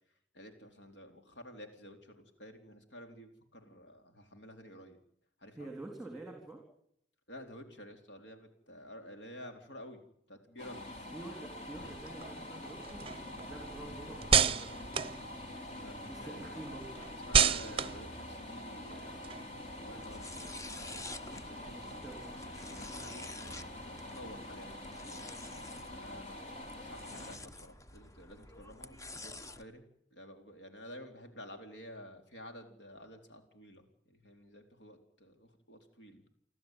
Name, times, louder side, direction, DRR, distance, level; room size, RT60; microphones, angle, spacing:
voice 1, 0.3-5.0 5.4-5.7 7.3-10.0 10.3-10.8 15.7-16.5 17.2-20.7 21.3-24.7 25.0-25.2 25.9-26.4 26.7-29.9 30.1-36.2, equal, 65° left, 5 dB, 4.0 m, -51 dB
voice 2, 5.5-6.6 11.1-15.0 16.0-17.1 21.6-22.4, right 2 dB, ahead, 3 dB, 3.8 m, -48 dB
sound 1, 10.6-27.4, left 1 dB, 40° left, 3.8 m, -46 dB
sound 2, 11.8-16.0 16.4-19.8, right 7 dB, 30° right, 0.8 m, -32 dB
sound 3, 19.9-29.6, left 2 dB, 20° left, 1.0 m, -49 dB
29.5 x 12.5 x 9.2 m, 0.72 s
head